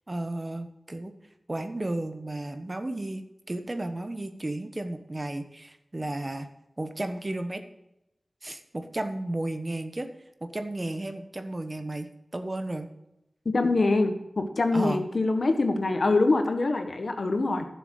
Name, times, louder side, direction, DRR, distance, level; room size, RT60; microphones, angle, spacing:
voice 1, 0.1-1.1 1.5-6.5 6.8-7.6 8.4-10.1 10.4-12.9 14.7-15.0, right 1 dB, 35° right, 8 dB, 1.2 m, -33 dB
voice 2, 13.5-17.7, left 3 dB, 65° left, 6 dB, 1.5 m, -24 dB
11.5 x 7.0 x 6.5 m, 0.88 s
wide cardioid pair, 80°, 0 cm